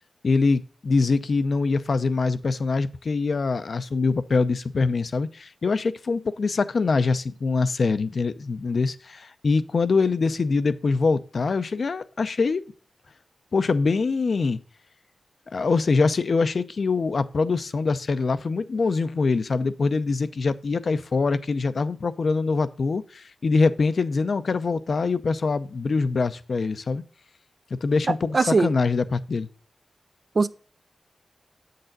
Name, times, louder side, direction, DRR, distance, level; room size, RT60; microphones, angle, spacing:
voice 1, 0.2-12.6 13.5-14.6 15.5-27.0 27.8-29.5, left 4 dB, 65° left, 0.6 m, -24 dB
voice 2, 28.1-28.7 30.4-30.5, right 4 dB, 50° right, 0.4 m, -21 dB
7.7 x 6.6 x 3.9 m
cardioid pair, 55°, 0 cm